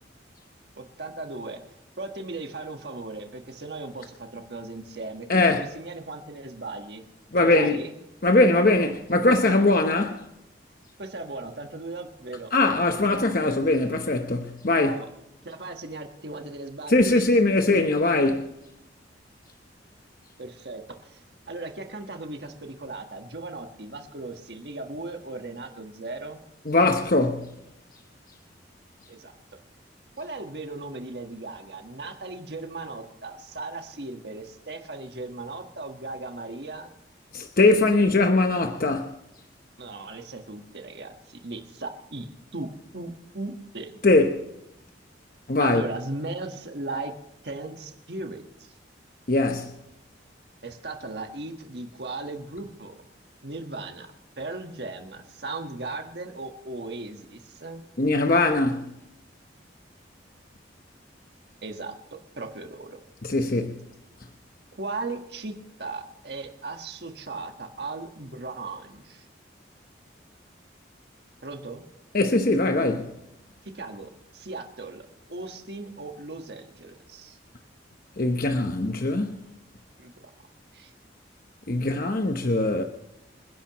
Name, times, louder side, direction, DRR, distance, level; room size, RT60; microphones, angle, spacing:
voice 1, 0.7-1.6 2.0-7.0 7.4-8.0 11.0-12.5 14.8-15.1 15.4-17.3 20.4-21.2 21.5-26.4 29.1-29.3 30.2-36.9 39.8-42.7 42.9-44.0 45.6-47.1 47.4-48.7 50.6-52.9 53.4-57.8 61.6-61.9 62.3-63.0 64.8-65.5 65.8-69.3 71.4-71.9 73.7-77.4 80.0-80.1 80.7-80.9, right 3 dB, 60° right, 1.5 m, -37 dB
voice 2, 5.3-5.6 7.3-7.8 8.2-10.3 12.5-15.0 16.9-18.5 26.7-27.5 37.3-39.1 44.0-44.4 45.5-45.8 49.3-49.7 58.0-58.9 63.2-63.8 72.1-73.1 78.2-79.3 81.7-82.8, left 2 dB, 50° left, 0.9 m, -21 dB
27.5 x 10.5 x 3.1 m
head